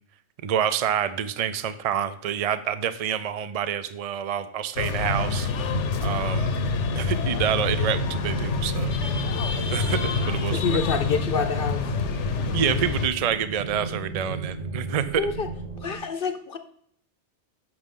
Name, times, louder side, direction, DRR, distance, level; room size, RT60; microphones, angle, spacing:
voice 1, 0.4-5.5 6.0-6.6 7.0-8.9 9.7-10.8 12.5-15.3, right 9 dB, 60° right, 12 dB, 0.3 m, -27 dB
sound 1, 4.8-13.1, left 4 dB, 85° left, 1.1 m, -26 dB
sound 2, 8.1-16.0, right 3 dB, 40° right, 1.1 m, -36 dB
voice 2, 10.5-11.9 15.2-15.5 15.8-16.6, left 5 dB, 55° left, 8 dB, 0.8 m, -27 dB
9.5 x 6.3 x 3.7 m, 0.66 s
omnidirectional pair, 1.2 m